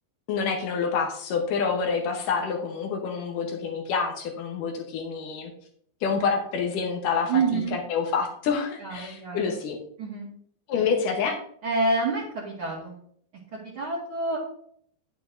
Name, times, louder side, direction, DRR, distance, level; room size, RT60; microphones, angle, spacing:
voice 1, 0.3-5.5 6.0-9.8 10.7-11.4, left 5 dB, 70° left, 2 dB, 2.1 m, -27 dB
voice 2, 7.3-7.8 8.8-9.5 10.0-10.3 10.7-10.9 11.6-12.9 13.5-14.4, right 3 dB, 50° right, -7 dB, 1.7 m, -28 dB
10.5 x 8.4 x 2.7 m, 0.63 s
omnidirectional pair, 5.1 m